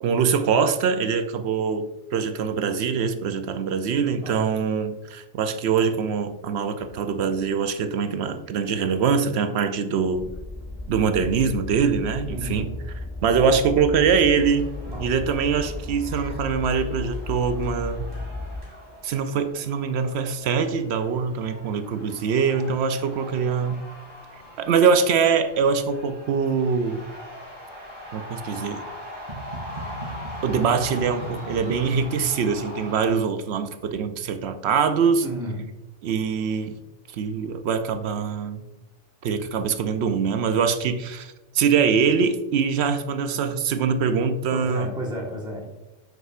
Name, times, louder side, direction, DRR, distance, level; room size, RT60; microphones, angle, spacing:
voice 1, 0.0-10.3 10.9-12.7 13.2-14.7 15.0-18.1 19.0-23.8 24.6-27.0 28.1-28.8 30.4-35.2 36.0-36.8 37.1-38.6 39.2-44.9, right 6 dB, 70° right, 9 dB, 0.8 m, -23 dB
voice 2, 4.2-4.5 12.3-12.7 14.9-15.1 35.2-35.6 44.5-45.7, equal, 5° right, -3 dB, 1.3 m, -32 dB
sound 1, 10.0-18.6, left 2 dB, 25° left, 0.7 m, -34 dB
sound 2, 14.1-33.1, equal, 30° right, 2.2 m, -40 dB
7.1 x 6.3 x 2.4 m, 1.0 s
omnidirectional pair, 1.2 m